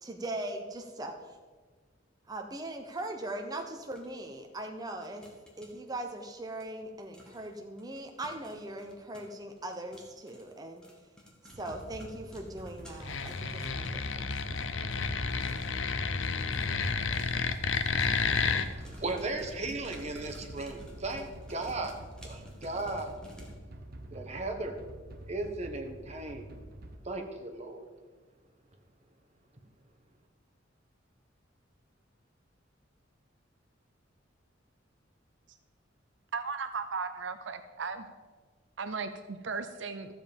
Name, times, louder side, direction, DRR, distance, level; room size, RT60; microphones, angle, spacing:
voice 1, 0.0-1.2 2.3-5.3 5.6-10.8 11.6-14.3, right 1 dB, 20° right, 3 dB, 0.8 m, -40 dB
sound 1, 4.0-4.1 5.0-5.7 6.6-6.7 7.1-7.5 7.8-15.9 16.2-23.5, equal, 5° left, 1.9 m, -54 dB
sound 2, 11.5-27.0, right 1 dB, 50° right, 1.1 m, -47 dB
sound 3, 13.0-18.7, left 5 dB, 80° left, 0.7 m, -31 dB
voice 2, 18.6-21.9 22.2-23.1 24.1-24.8 25.3-26.5 27.0-27.8, right 2 dB, 35° right, 4 dB, 1.3 m, -36 dB
voice 3, 36.3-38.1 38.8-40.1, right 5 dB, 70° right, 8 dB, 0.6 m, -36 dB
13.5 x 7.6 x 5.3 m, 1.4 s
head